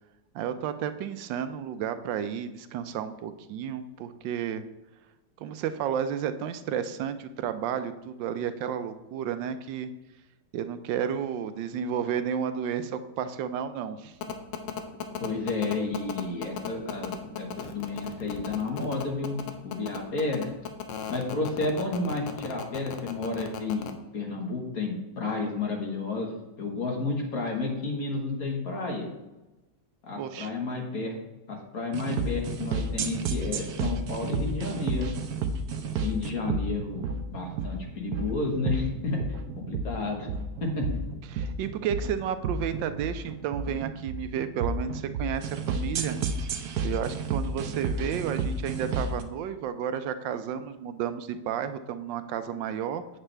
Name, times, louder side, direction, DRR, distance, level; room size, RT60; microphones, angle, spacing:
voice 1, 0.3-4.6 5.4-9.9 10.5-14.1 21.0-21.1 30.2-30.5 41.3-46.2 46.8-53.2, right 8 dB, 85° right, 10 dB, 1.3 m, -32 dB
sound 1, 14.2-23.9, left 8 dB, 85° left, 1.5 m, -35 dB
voice 2, 15.2-20.5 21.1-26.3 26.6-29.1 30.0-31.2 31.5-35.1 35.9-39.2 39.6-40.3 40.6-40.9, left 3 dB, 55° left, 1 dB, 1.8 m, -31 dB
sound 2, 31.9-49.2, right 4 dB, 65° right, 1.1 m, -31 dB
8.1 x 7.4 x 3.3 m, 1.1 s
omnidirectional pair, 2.0 m